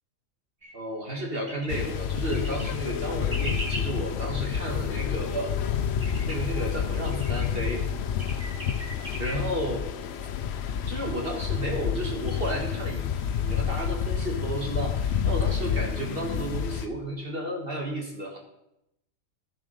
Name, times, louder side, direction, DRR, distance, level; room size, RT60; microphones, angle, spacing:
sound 1, 0.6-0.7 1.3-1.7 2.3-2.7 3.3-3.8 6.0-6.4 7.1-7.5 8.2-9.4, right 1 dB, 25° right, 2.1 m, -38 dB
voice 1, 0.7-5.6 6.2-7.9 9.2-9.9 10.9-18.4, right 1 dB, 45° right, 1 dB, 1.7 m, -32 dB
sound 2, 1.7-16.9, left 8 dB, 60° left, 0.8 m, -29 dB
13.0 x 7.3 x 5.3 m, 0.85 s
omnidirectional pair, 1.3 m